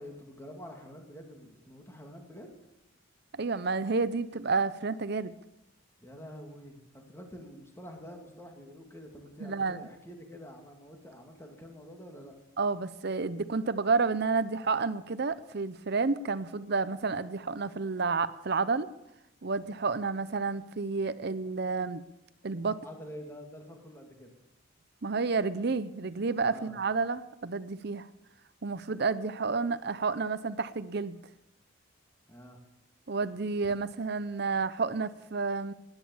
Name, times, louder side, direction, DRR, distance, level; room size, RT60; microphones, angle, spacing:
voice 1, 0.0-2.5 6.0-12.3 22.8-24.4 26.4-26.8 32.3-32.6 33.6-33.8, equal, 10° left, 2 dB, 2.2 m, -47 dB
voice 2, 3.4-5.3 9.4-9.8 12.6-18.9 19.4-22.0 22.4-22.8 25.0-28.1 28.6-31.2 33.1-35.7, right 4 dB, 50° right, 14 dB, 0.6 m, -30 dB
17.5 x 11.0 x 7.1 m, 0.88 s
head